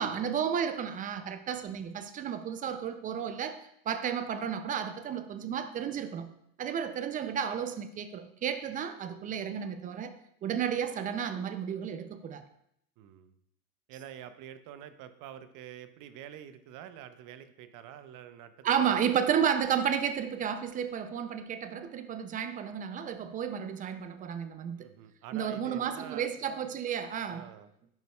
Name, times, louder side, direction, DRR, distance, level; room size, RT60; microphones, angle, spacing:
voice 1, 0.0-6.3 6.6-10.1 10.4-12.4 18.6-24.9 25.3-27.5, right 8 dB, 20° right, 10 dB, 0.3 m, -32 dB
voice 2, 13.0-13.4 13.9-19.1 24.8-26.3 27.3-27.7, right 10 dB, 45° right, 11 dB, 0.7 m, -47 dB
10.5 x 5.2 x 2.2 m, 0.73 s
hypercardioid pair, 100°, 46 cm